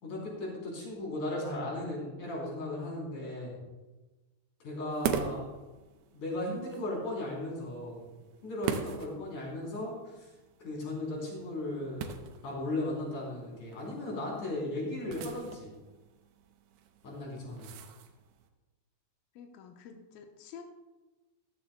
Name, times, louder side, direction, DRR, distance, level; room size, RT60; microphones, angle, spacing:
voice 1, 0.0-3.6 4.6-5.4 6.1-8.1 8.4-10.3 10.6-12.1 12.4-15.7 17.0-17.7, left 1 dB, 45° left, -3 dB, 4.5 m, -36 dB
sound 1, 4.9-18.5, right 8 dB, 80° right, 2.6 m, -42 dB
voice 2, 19.4-20.6, left 7 dB, 85° left, 3 dB, 2.1 m, -49 dB
15.0 x 13.5 x 2.2 m, 1.2 s
omnidirectional pair, 5.4 m